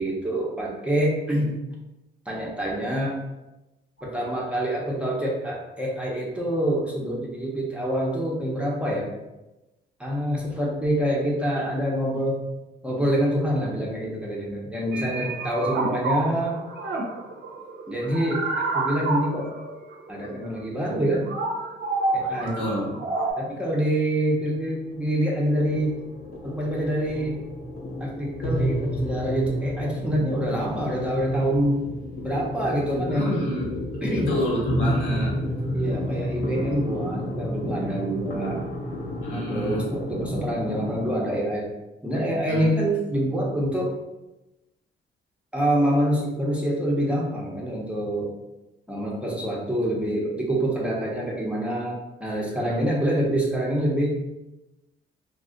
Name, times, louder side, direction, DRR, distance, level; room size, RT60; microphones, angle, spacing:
voice 1, 0.0-1.5 2.3-3.2 4.0-9.1 10.0-12.4 12.8-16.6 17.9-19.5 20.1-21.3 22.1-22.6 23.4-26.0 26.4-27.4 28.0-31.9 32.2-33.5 34.0-34.3 35.7-38.7 39.3-41.7 42.0-44.0 45.5-48.3 48.9-54.2, right 1 dB, 5° right, -4 dB, 0.7 m, -26 dB
sound 1, 14.9-23.3, right 3 dB, 60° right, 0.6 m, -29 dB
voice 2, 22.4-23.0 33.1-33.7 33.9-35.3 39.2-39.8 42.5-42.7 52.6-52.9, equal, 75° left, -4 dB, 1.0 m, -29 dB
sound 2, 24.3-41.1, equal, 50° left, 0.7 m, -30 dB
2.4 x 2.1 x 3.6 m, 0.99 s
cardioid pair, 90°, 20 cm